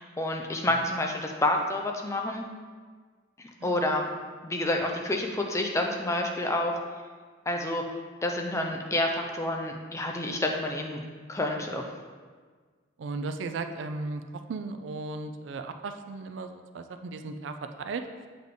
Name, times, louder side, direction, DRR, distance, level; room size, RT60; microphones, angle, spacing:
voice 1, 0.0-2.4 3.4-4.1 4.4-6.7 7.5-7.8 8.2-11.0 11.3-11.9, left 1 dB, 15° left, 2 dB, 0.4 m, -29 dB
voice 2, 13.0-14.2 14.5-18.0, right 3 dB, 75° right, 8 dB, 0.4 m, -36 dB
7.2 x 3.8 x 3.6 m, 1.5 s
head